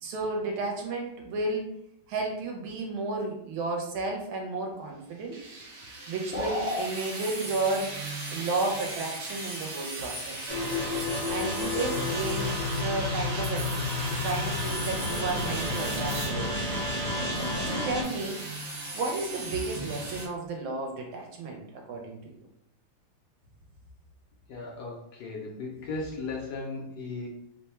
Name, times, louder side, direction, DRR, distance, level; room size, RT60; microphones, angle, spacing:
voice 1, 0.0-1.7 2.1-5.4 6.1-8.0 8.3-10.5 11.3-13.7 14.1-16.8 17.7-18.4 18.9-22.5, right 3 dB, 85° right, 1 dB, 1.6 m, -32 dB
sound 1, 5.3-20.3, right 2 dB, 50° right, 0.9 m, -38 dB
sound 2, 6.3-6.9, left 2 dB, 45° left, 1.2 m, -30 dB
sound 3, 10.5-18.0, left 2 dB, 35° right, 1.2 m, -31 dB
voice 2, 24.5-27.3, left 3 dB, 70° left, -2 dB, 1.0 m, -36 dB
3.5 x 2.2 x 4.3 m, 0.77 s
omnidirectional pair, 2.2 m